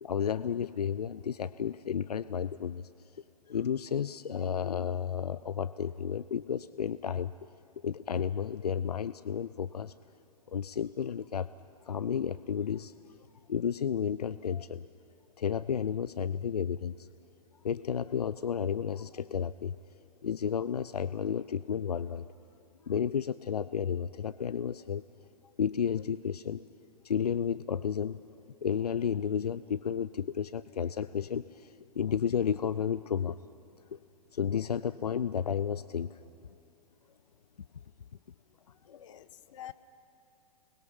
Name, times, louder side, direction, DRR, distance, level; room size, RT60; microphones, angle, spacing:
voice 1, 0.0-2.8 3.5-7.3 7.8-9.9 10.5-11.5 11.9-12.9 13.5-14.8 15.4-17.1 17.6-19.7 20.2-22.2 22.9-25.0 25.6-26.6 27.0-28.2 28.6-33.4 34.3-36.2 38.9-39.2, left 8 dB, 85° left, 16 dB, 0.5 m, -32 dB
voice 2, 38.9-39.7, left 12 dB, 55° left, 13 dB, 1.2 m, -47 dB
30.0 x 21.0 x 5.6 m, 2.7 s
hypercardioid pair, 120°, 20 cm